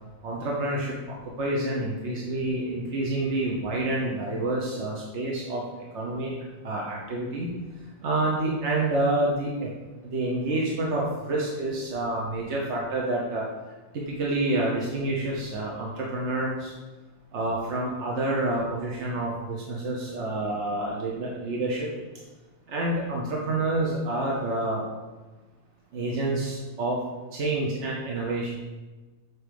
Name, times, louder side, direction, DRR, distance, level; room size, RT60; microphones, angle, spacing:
voice 1, 0.2-5.6 5.9-6.3 6.6-7.5 8.0-9.7 10.0-13.5 13.9-16.7 17.3-21.9 22.7-24.8 25.9-27.0 27.3-28.5, right 2 dB, 85° right, -3 dB, 1.3 m, -28 dB
8.0 x 3.2 x 5.1 m, 1.2 s
omnidirectional pair, 1.2 m